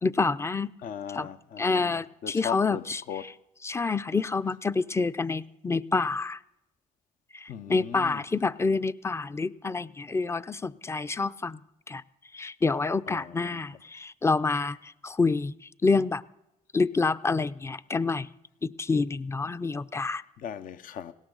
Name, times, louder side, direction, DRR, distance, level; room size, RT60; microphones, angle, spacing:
voice 1, 0.0-0.7 1.2-1.3 1.6-2.8 3.6-6.4 7.3-11.6 11.9-12.0 12.3-15.5 15.8-16.2 16.7-18.3 18.6-20.2, left 4 dB, 15° left, 0.5 m, -27 dB
voice 2, 0.8-3.3 7.5-8.2 13.1-13.6 20.4-21.1, left 8 dB, 60° left, 0.8 m, -38 dB
19.5 x 17.0 x 3.9 m
supercardioid pair, 65°, 15 cm